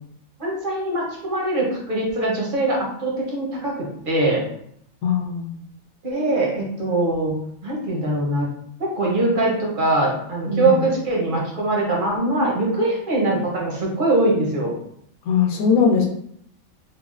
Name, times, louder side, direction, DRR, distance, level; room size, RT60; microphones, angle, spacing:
voice 1, 0.4-4.4 6.0-7.3 7.6-8.5 8.8-14.7, right 2 dB, 50° right, -2 dB, 0.6 m, -22 dB
voice 2, 5.0-5.6 10.5-10.8 15.3-16.1, left 6 dB, 85° left, 0 dB, 1.1 m, -20 dB
3.5 x 2.0 x 2.4 m, 0.71 s
omnidirectional pair, 1.5 m